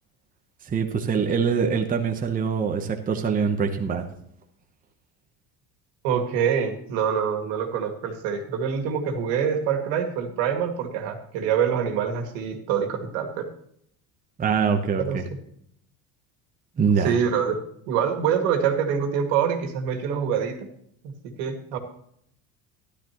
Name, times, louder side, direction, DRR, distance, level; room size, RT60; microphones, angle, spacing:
voice 1, 0.7-4.0 14.4-15.2 16.8-17.2, right 6 dB, 20° right, 4 dB, 0.9 m, -24 dB
voice 2, 6.0-13.5 15.0-15.2 17.0-17.6 17.9-20.7 21.4-21.8, right 7 dB, 85° right, 4 dB, 2.2 m, -25 dB
12.5 x 11.5 x 3.0 m, 0.67 s
cardioid pair, 145°, 42 cm